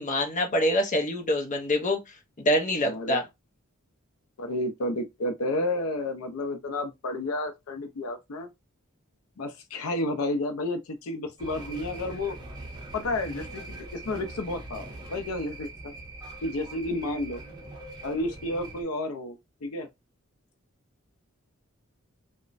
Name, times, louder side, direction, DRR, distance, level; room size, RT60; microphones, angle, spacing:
voice 1, 0.0-2.0 2.4-3.2, left 1 dB, 35° left, 0.6 m, -25 dB
voice 2, 2.8-3.2 4.4-8.5 9.4-12.4 12.9-15.9 16.4-17.4 18.0-19.4 19.6-19.9, left 1 dB, 80° left, 0.5 m, -31 dB
sound 1, 11.4-18.8, right 2 dB, 20° right, 0.8 m, -42 dB
3.0 x 2.1 x 2.4 m
head